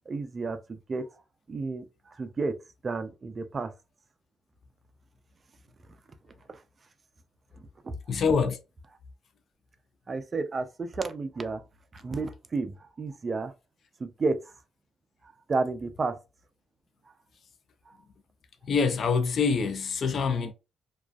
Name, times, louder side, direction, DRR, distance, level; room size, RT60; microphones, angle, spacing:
voice 1, 0.1-1.1 1.5-3.7 6.5-6.6 7.5-8.0 10.1-11.6 11.9-13.5 14.0-14.5 15.2-16.2 17.9-18.0, right 3 dB, 35° right, 0.4 m, -32 dB
voice 2, 8.1-8.6 18.6-20.5, left 5 dB, 55° left, 0.4 m, -25 dB
2.4 x 2.3 x 2.3 m
cardioid pair, 90°, 0 cm